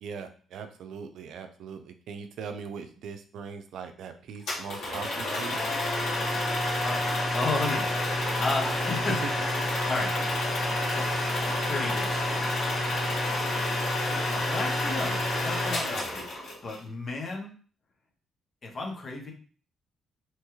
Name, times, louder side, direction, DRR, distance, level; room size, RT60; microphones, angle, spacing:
voice 1, 0.0-5.6 9.2-9.3, right 6 dB, 75° right, 8 dB, 0.4 m, -40 dB
sound 1, 4.5-16.8, left 1 dB, 75° left, 1.5 m, -29 dB
voice 2, 6.8-9.2 9.9-10.1 10.9-11.1 11.7-12.7 14.3-17.5 18.6-19.3, left 3 dB, 45° left, 0 dB, 0.9 m, -33 dB
2.9 x 2.3 x 3.0 m, 0.42 s
cardioid pair, 90°, 0 cm